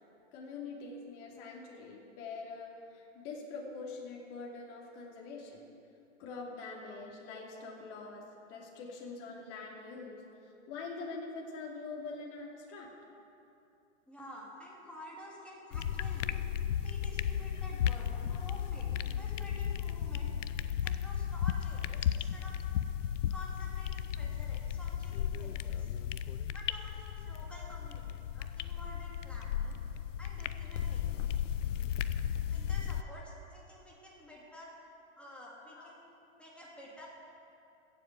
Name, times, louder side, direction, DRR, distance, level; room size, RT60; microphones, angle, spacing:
voice 1, 0.3-5.6 6.2-8.2 8.5-12.9 18.3-18.4 35.7-35.9, left 4 dB, 40° left, -2 dB, 2.7 m, -44 dB
voice 2, 14.1-16.5 16.8-20.3 20.8-22.6 23.3-25.9 26.5-29.8 30.2-31.3 32.5-34.7 35.2-36.1 36.4-37.1, left 1 dB, 5° left, -5 dB, 3.1 m, -50 dB
sound 1, 15.7-33.0, left 9 dB, 90° left, 0.6 m, -35 dB
15.5 x 7.6 x 8.0 m, 2.6 s
hypercardioid pair, 130°, 36 cm